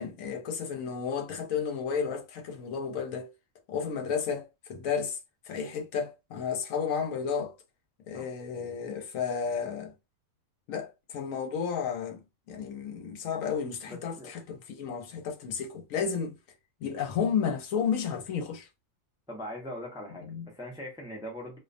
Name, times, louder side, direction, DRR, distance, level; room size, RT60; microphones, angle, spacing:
voice 1, 0.0-3.3 3.7-5.2 5.5-7.6 8.1-9.9 10.7-16.4 16.8-18.7 20.3-20.5, left 6 dB, 80° left, 1.0 m, -32 dB
voice 2, 13.9-14.3 19.3-21.6, equal, 5° right, 0.5 m, -41 dB
2.4 x 2.2 x 2.5 m
omnidirectional pair, 1.4 m